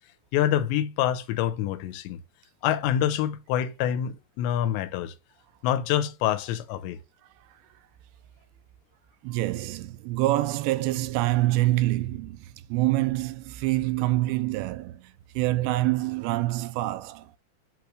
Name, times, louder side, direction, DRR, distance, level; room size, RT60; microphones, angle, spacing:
voice 1, 0.3-2.2 2.6-5.1 5.6-7.0, left 11 dB, 90° left, 2.9 m, -26 dB
voice 2, 9.2-17.3, right 17 dB, 85° right, 2.7 m, -26 dB
8.5 x 3.1 x 4.8 m
omnidirectional pair, 5.1 m